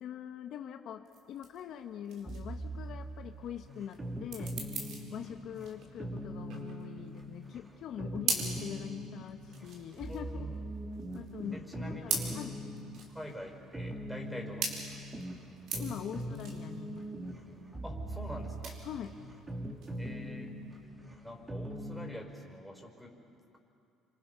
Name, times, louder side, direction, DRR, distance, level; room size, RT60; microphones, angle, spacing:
voice 1, 0.0-4.5 5.1-10.5 11.1-12.6 15.7-17.1 18.8-19.1, left 9 dB, 65° left, 6 dB, 1.1 m, -43 dB
sound 1, 1.0-20.8, right 4 dB, 70° right, 4.5 m, -41 dB
sound 2, 2.2-22.1, right 1 dB, 20° right, 2.8 m, -42 dB
voice 2, 5.1-5.5 10.1-10.7 11.5-12.4 13.1-14.9 17.8-18.8 20.0-20.5 21.2-23.1, equal, ahead, 1 dB, 5.0 m, -46 dB
27.0 x 26.5 x 5.7 m, 2.6 s
supercardioid pair, 90°, 0 cm